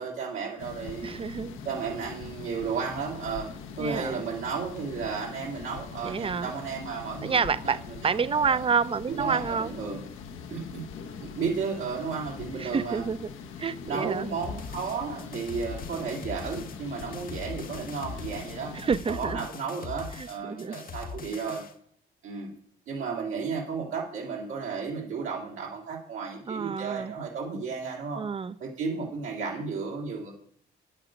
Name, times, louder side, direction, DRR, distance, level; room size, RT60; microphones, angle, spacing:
voice 1, 0.0-1.2 1.6-3.5 3.8-7.8 8.0-8.6 9.1-10.0 10.5-10.8 11.2-13.0 13.8-18.7 19.0-21.6 22.2-22.5 22.9-28.2 28.6-30.3, right 5 dB, 85° right, -3 dB, 2.5 m, -33 dB
sound 1, 0.6-19.0, left 6 dB, 90° left, 1.0 m, -42 dB
voice 2, 1.0-1.6 3.8-4.3 6.0-6.5 7.2-9.7 12.6-13.3 13.6-14.3 18.7-19.4 20.2-20.8 26.5-27.1 28.2-28.5, right 6 dB, 30° right, 17 dB, 0.5 m, -29 dB
sound 2, 14.4-21.7, left 5 dB, 45° left, 1.0 m, -41 dB
9.1 x 8.8 x 5.1 m, 0.65 s
cardioid pair, 90°, 20 cm